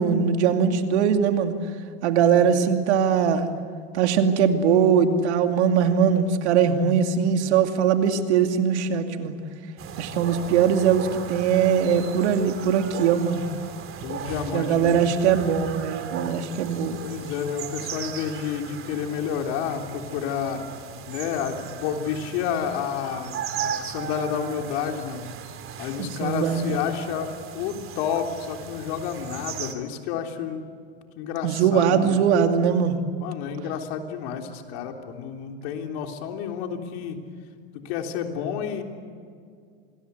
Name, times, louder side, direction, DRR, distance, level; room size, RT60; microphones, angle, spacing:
voice 1, 0.0-1.5 2.0-3.5 3.9-9.4 10.0-13.4 14.5-17.0 26.0-26.8 31.4-33.0, right 7 dB, 85° right, 6 dB, 2.6 m, -21 dB
voice 2, 2.3-2.7 14.0-15.0 17.0-20.6 21.1-25.2 25.8-30.8 31.2-32.2 33.2-37.2 37.7-38.8, left 8 dB, 65° left, 4 dB, 3.5 m, -30 dB
sound 1, 9.8-29.7, right 8 dB, 40° right, 3.1 m, -37 dB
26.5 x 21.0 x 8.3 m, 2.2 s
supercardioid pair, 120°, 33 cm